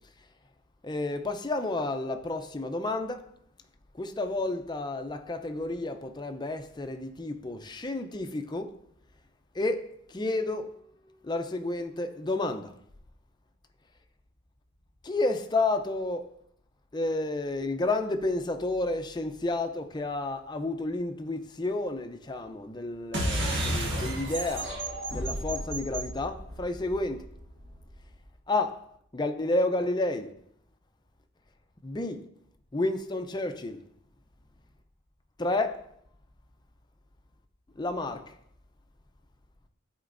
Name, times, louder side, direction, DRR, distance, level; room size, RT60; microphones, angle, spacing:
voice 1, 0.8-3.2 4.0-8.7 9.5-10.7 11.2-12.7 15.0-16.3 16.9-24.7 25.1-27.3 28.5-28.8 29.1-30.3 31.8-32.2 32.7-33.8 35.4-35.8 37.8-38.3, left 2 dB, 20° left, 0.5 m, -31 dB
sound 1, 23.1-28.0, right 1 dB, 65° right, 1.7 m, -32 dB
13.0 x 4.4 x 2.6 m
head